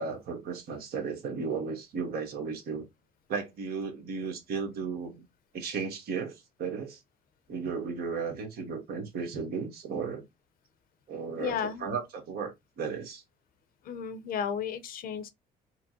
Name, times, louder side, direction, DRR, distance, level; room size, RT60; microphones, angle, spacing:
voice 1, 0.0-2.9 3.3-5.3 5.5-7.0 7.5-10.2 11.1-13.2, right 5 dB, 65° right, 1.3 m, -35 dB
voice 2, 11.4-11.9 13.8-15.3, left 7 dB, 60° left, 0.6 m, -33 dB
4.4 x 2.1 x 2.7 m
cardioid pair, 110°, 17 cm